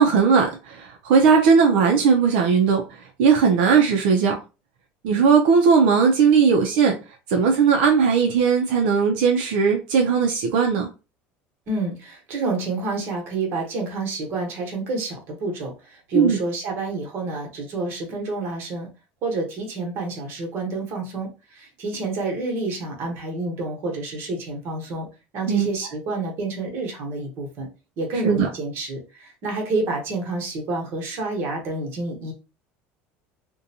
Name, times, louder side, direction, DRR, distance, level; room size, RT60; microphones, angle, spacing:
voice 1, 0.0-2.8 3.2-4.3 5.0-6.9 7.3-10.9 16.1-16.4 25.5-25.7 28.2-28.5, right 6 dB, 80° right, 0.5 m, -18 dB
voice 2, 11.7-18.9 19.2-25.1 25.3-27.7 28.0-32.3, right 2 dB, 45° right, 1.0 m, -29 dB
2.6 x 2.2 x 2.7 m
cardioid pair, 145°, 5 cm